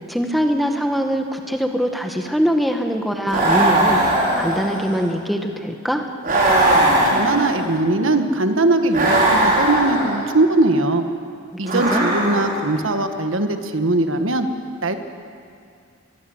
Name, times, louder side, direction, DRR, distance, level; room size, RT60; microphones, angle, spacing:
voice 1, 0.0-4.0 4.3-6.1 11.7-12.2, equal, ahead, 4 dB, 1.4 m, -22 dB
sound 1, 3.3-5.1 6.2-7.8 8.9-10.3 11.6-12.7, right 1 dB, 45° right, 5.7 m, -19 dB
voice 2, 7.1-11.0 11.6-14.5 14.8-15.0, right 2 dB, 70° right, 7 dB, 1.5 m, -20 dB
22.0 x 21.5 x 8.0 m, 2.3 s
head